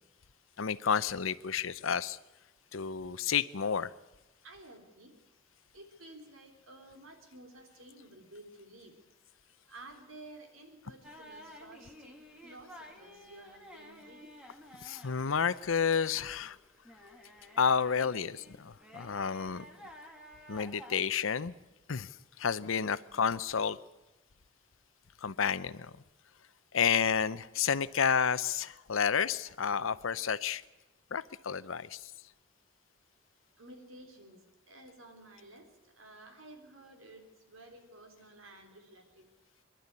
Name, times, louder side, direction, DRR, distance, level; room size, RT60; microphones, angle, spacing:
voice 1, 0.6-2.2 2.7-3.9 14.8-16.6 17.6-19.6 20.5-21.5 21.9-23.8 25.2-26.0 26.7-30.6 31.1-32.1, left 6 dB, 75° left, 16 dB, 0.7 m, -30 dB
voice 2, 4.4-5.1 5.7-8.9 9.6-12.2 12.4-14.3 33.6-39.3, right 2 dB, 85° right, 5 dB, 3.7 m, -53 dB
sound 1, 11.0-21.0, equal, 5° right, 2.1 m, -53 dB
24.5 x 11.5 x 9.6 m, 1.1 s
head